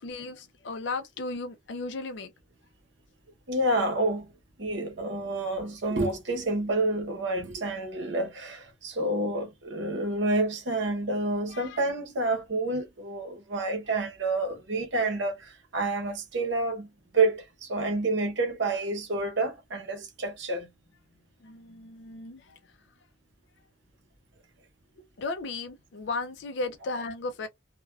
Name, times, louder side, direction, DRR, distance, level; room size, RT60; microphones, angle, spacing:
voice 1, 0.0-2.3 11.5-11.8 21.4-22.6 25.0-27.5, left 3 dB, 60° left, 0.4 m, -35 dB
voice 2, 3.5-4.3 4.6-16.9 17.1-20.7, right 2 dB, 60° right, 0.8 m, -29 dB
3.2 x 2.2 x 2.2 m
head